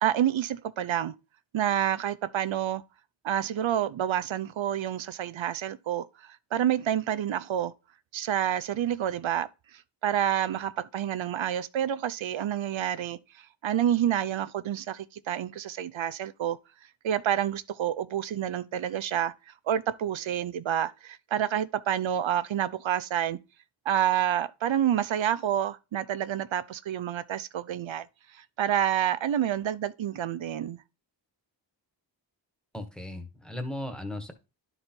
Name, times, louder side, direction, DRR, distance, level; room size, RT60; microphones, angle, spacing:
voice 1, 0.0-1.1 1.5-2.8 3.2-7.7 8.1-16.6 17.0-19.3 19.7-23.4 23.9-28.1 28.3-30.8, right 10 dB, 90° right, 0.6 m, -28 dB
voice 2, 32.7-34.3, left 1 dB, ahead, 1.4 m, -36 dB
11.0 x 3.9 x 4.4 m
wide cardioid pair, 95°, 45 cm